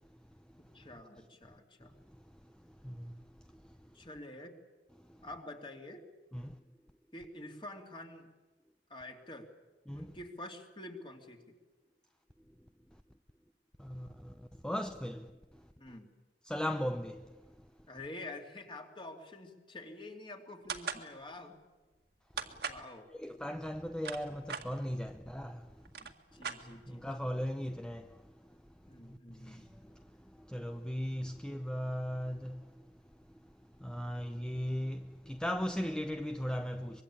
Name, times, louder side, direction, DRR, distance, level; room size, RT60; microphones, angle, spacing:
voice 1, 0.7-1.9 3.9-4.5 5.2-6.0 7.1-8.3 8.9-9.5 9.9-11.5 15.8-16.1 17.9-21.5 22.7-23.1 26.0-27.1 28.9-29.7, left 2 dB, 30° left, 2.9 m, -47 dB
voice 2, 2.8-3.2 6.3-6.6 9.9-10.1 13.8-15.3 16.5-17.3 23.2-25.7 26.7-28.2 29.0-30.1 30.4-32.9 33.8-37.0, equal, 5° left, 0.7 m, -38 dB
sound 1, 20.7-21.1 22.4-22.9 23.8-24.7 25.5-25.6 25.8-27.0, right 6 dB, 65° right, 1.9 m, -39 dB
24.5 x 22.0 x 8.7 m
head